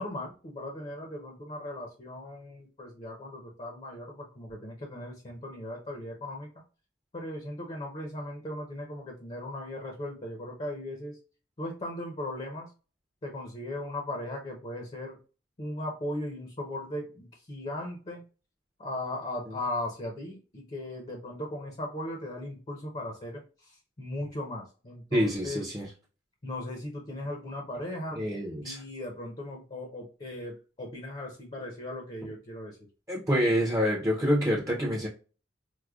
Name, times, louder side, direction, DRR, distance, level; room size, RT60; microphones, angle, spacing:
voice 1, 0.0-6.5 7.1-11.2 11.6-12.7 13.2-15.2 15.6-18.2 18.8-25.6 26.4-28.2 28.6-32.8, left 1 dB, 35° left, 1 dB, 0.6 m, -38 dB
voice 2, 25.1-25.9 28.1-28.8 33.1-35.1, equal, 20° right, -3 dB, 0.5 m, -27 dB
4.7 x 2.1 x 2.3 m, 0.36 s
head